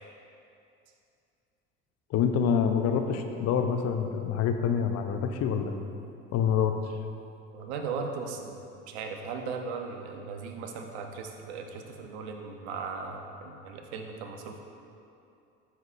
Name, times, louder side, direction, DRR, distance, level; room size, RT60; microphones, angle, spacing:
voice 1, 2.1-5.7 6.3-6.8, left 7 dB, 50° left, 6 dB, 0.6 m, -26 dB
voice 2, 7.5-8.6 8.9-14.6, right 5 dB, 75° right, 4 dB, 0.9 m, -37 dB
12.0 x 5.8 x 2.5 m, 2.6 s
hypercardioid pair, 70°, 34 cm